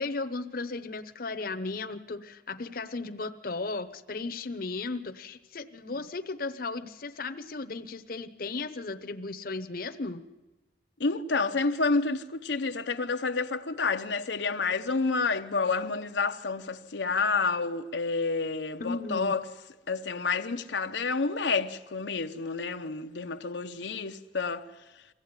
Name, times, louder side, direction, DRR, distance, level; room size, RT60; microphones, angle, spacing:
voice 1, 0.0-10.2 18.8-19.3, left 3 dB, 55° left, 0.9 m, -35 dB
voice 2, 11.0-19.4 19.9-24.7, left 4 dB, 85° left, 0.8 m, -29 dB
22.5 x 15.5 x 9.6 m
head